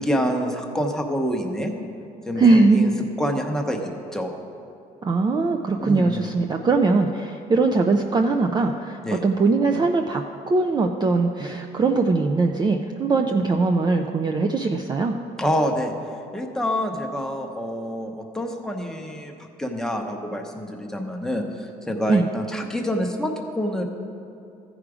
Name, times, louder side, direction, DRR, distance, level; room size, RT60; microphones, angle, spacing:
voice 1, 0.0-1.7 2.3-2.9 3.2-4.3 5.8-6.2 9.0-9.2 15.4-15.9 16.3-23.8, equal, 5° left, 2 dB, 0.9 m, -27 dB
voice 2, 2.4-2.9 5.0-15.1 22.1-22.2, right 3 dB, 25° right, 4 dB, 0.4 m, -21 dB
14.0 x 4.9 x 4.9 m, 2.7 s
cardioid pair, 110°, 17 cm